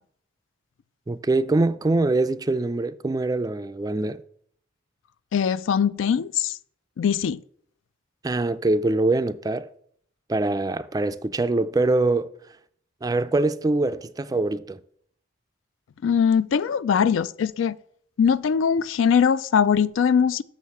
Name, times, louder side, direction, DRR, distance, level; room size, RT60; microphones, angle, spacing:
voice 1, 1.1-4.2 8.2-9.7 10.3-12.3 13.0-14.8, right 2 dB, 20° right, 0.3 m, -23 dB
voice 2, 5.3-6.6 7.0-7.4 16.0-17.8 18.2-20.4, left 7 dB, 80° left, 0.3 m, -21 dB
6.5 x 6.4 x 6.9 m
head